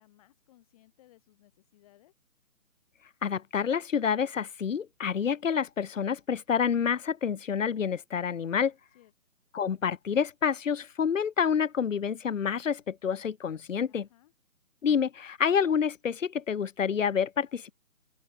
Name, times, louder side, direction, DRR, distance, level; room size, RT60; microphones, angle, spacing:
voice 1, 0.0-2.1 8.9-9.1 13.9-14.3, left 15 dB, 25° left, 6.5 m, -61 dB
voice 2, 3.2-8.7 9.5-14.1 14.8-17.7, left 7 dB, 55° left, 0.8 m, -28 dB
open air
figure-of-eight pair, 155°, 45 cm